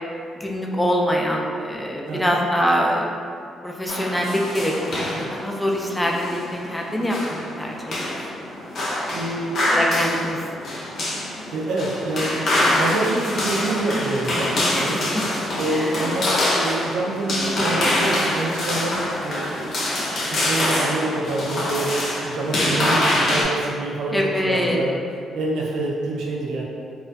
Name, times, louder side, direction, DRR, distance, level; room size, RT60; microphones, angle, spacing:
voice 1, 0.4-3.2 3.6-8.2 9.7-10.4 14.7-14.9 15.7-16.1 24.1-24.8, equal, 10° left, -1 dB, 0.3 m, -24 dB
voice 2, 2.1-2.4 9.1-9.6 10.2-10.3 11.5-12.5 12.8-15.1 15.6-19.7 20.3-25.0 25.3-26.6, right 2 dB, 85° right, -3 dB, 0.4 m, -26 dB
sound 1, 3.9-23.4, left 1 dB, 55° left, 0.6 m, -25 dB
2.3 x 2.1 x 2.5 m, 2.3 s
cardioid pair, 90°, 0 cm